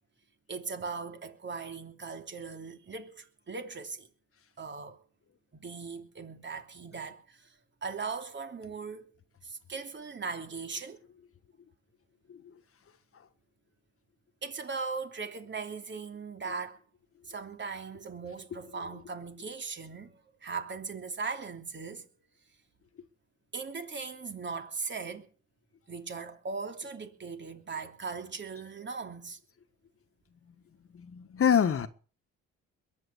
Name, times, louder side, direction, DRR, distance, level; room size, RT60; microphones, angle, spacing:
voice 1, 0.5-4.1 4.6-5.0 5.5-7.5 7.8-9.1 9.4-11.0 14.4-16.8 17.3-22.1 23.5-25.3 25.9-29.4, right 4 dB, 40° right, 3.1 m, -39 dB
voice 2, 30.9-31.9, left 8 dB, 45° left, 1.6 m, -26 dB
22.0 x 8.9 x 7.2 m
cardioid pair, 90°, 30 cm